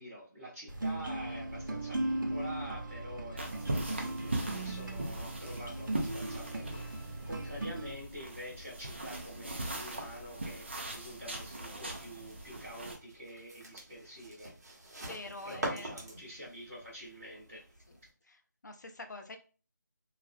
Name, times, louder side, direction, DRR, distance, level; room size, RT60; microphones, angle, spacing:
voice 1, 0.0-6.9 7.2-14.5 15.4-17.7, equal, 10° right, -13 dB, 0.8 m, -47 dB
sound 1, 0.7-7.9, right 1 dB, 85° right, 0.7 m, -38 dB
sound 2, 3.4-13.0, right 1 dB, 35° right, 0.4 m, -40 dB
sound 3, 12.3-18.1, right 1 dB, 55° right, 0.9 m, -44 dB
voice 2, 15.0-15.9 18.3-18.4 18.6-19.4, left 2 dB, 65° left, 5 dB, 0.5 m, -45 dB
2.4 x 2.1 x 2.5 m, 0.36 s
figure-of-eight pair, 175°, 10 cm